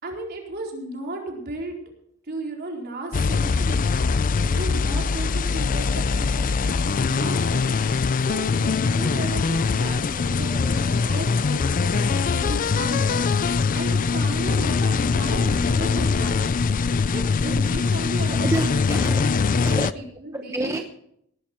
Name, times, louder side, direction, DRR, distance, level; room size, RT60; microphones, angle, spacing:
voice 1, 0.0-1.8 2.3-4.0 4.3-16.6 17.1-19.1 19.5-20.7, right 2 dB, 50° right, 0 dB, 4.2 m, -35 dB
sound 1, 3.1-19.9, left 4 dB, 40° left, 0.4 m, -22 dB
voice 2, 18.3-19.9 20.3-20.8, right 1 dB, 15° right, 4 dB, 1.0 m, -30 dB
18.5 x 11.5 x 4.5 m, 0.72 s
head